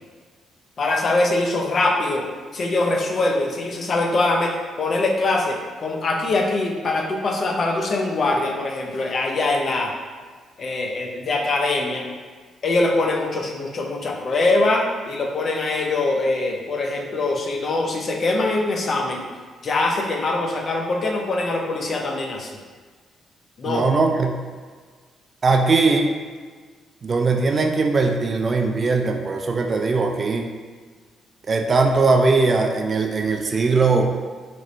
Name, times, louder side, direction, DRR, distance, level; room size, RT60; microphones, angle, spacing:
voice 1, 0.8-2.3 2.5-9.9 10.6-12.1 12.6-19.3 19.6-22.5 23.6-23.9, left 2 dB, 50° left, 1 dB, 0.5 m, -23 dB
voice 2, 23.6-24.4 25.4-26.1 27.0-30.5 31.5-34.1, right 3 dB, 40° right, 4 dB, 0.3 m, -20 dB
2.9 x 2.5 x 3.0 m, 1.5 s
cardioid pair, 90°, 0 cm